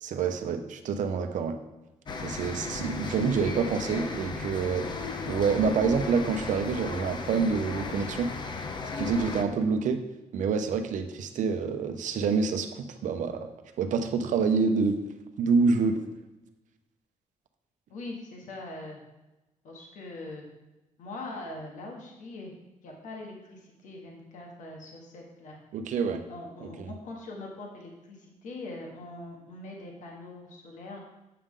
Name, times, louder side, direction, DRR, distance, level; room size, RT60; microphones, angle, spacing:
voice 1, 0.0-1.6 2.2-5.0 5.3-8.3 9.0-10.0 10.3-13.5 13.8-15.0 15.4-16.0 25.7-26.2 26.8-26.9, right 5 dB, 65° right, 7 dB, 0.7 m, -27 dB
sound 1, 2.1-9.4, left 4 dB, 35° left, 0.6 m, -35 dB
voice 2, 17.9-19.0 19.6-20.4 21.0-22.5 22.8-25.6 26.3-31.0, left 2 dB, 65° left, -1 dB, 1.5 m, -42 dB
8.5 x 6.8 x 3.8 m, 1.0 s
wide cardioid pair, 175°, 14 cm